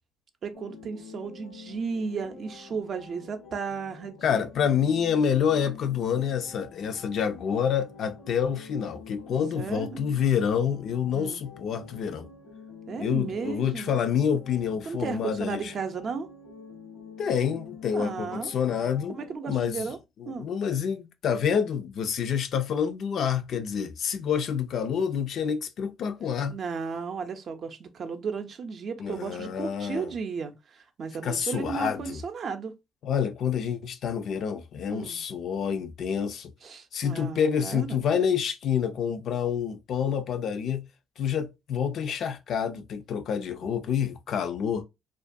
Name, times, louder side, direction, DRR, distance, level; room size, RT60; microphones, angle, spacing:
voice 1, 0.4-4.4 9.6-10.0 11.1-11.4 12.9-14.0 14.8-16.3 17.9-18.5 19.1-20.0 20.2-20.5 26.5-32.8 34.9-35.2 36.6-38.0, right 5 dB, 55° right, 0.5 m, -34 dB
sound 1, 0.5-19.4, left 5 dB, 85° left, 1.0 m, -47 dB
voice 2, 4.2-12.3 13.0-15.7 17.2-19.2 19.5-19.9 20.2-26.6 29.0-30.1 31.2-32.2 33.0-36.5 36.9-40.9 41.2-44.8, left 7 dB, 65° left, 0.4 m, -28 dB
2.4 x 2.2 x 2.5 m
supercardioid pair, 80°, 0 cm